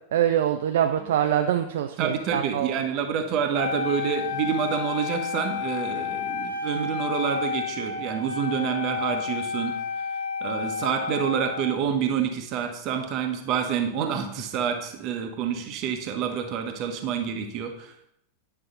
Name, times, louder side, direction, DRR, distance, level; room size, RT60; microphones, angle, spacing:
voice 1, 0.1-2.7, right 10 dB, 60° right, 6 dB, 0.4 m, -24 dB
voice 2, 2.0-9.8 10.4-18.1, right 8 dB, 40° right, 4 dB, 1.2 m, -28 dB
Wind instrument woodwind instrument, 3.5-11.8, left 6 dB, 60° left, 0.8 m, -31 dB
9.6 x 5.5 x 3.8 m, 0.75 s
figure-of-eight pair, 90°, 0 cm